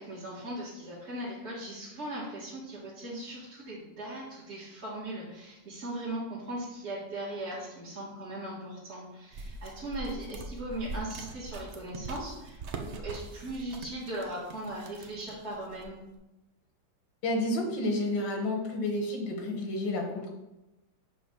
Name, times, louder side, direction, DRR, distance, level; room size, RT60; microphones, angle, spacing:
voice 1, 0.0-16.0, right 1 dB, 40° right, -7 dB, 1.6 m, -39 dB
sound 1, 9.3-16.1, right 3 dB, 70° right, 0.6 m, -42 dB
voice 2, 17.2-20.3, left 1 dB, 90° left, 2 dB, 1.9 m, -30 dB
7.5 x 3.1 x 5.4 m, 0.97 s
omnidirectional pair, 2.0 m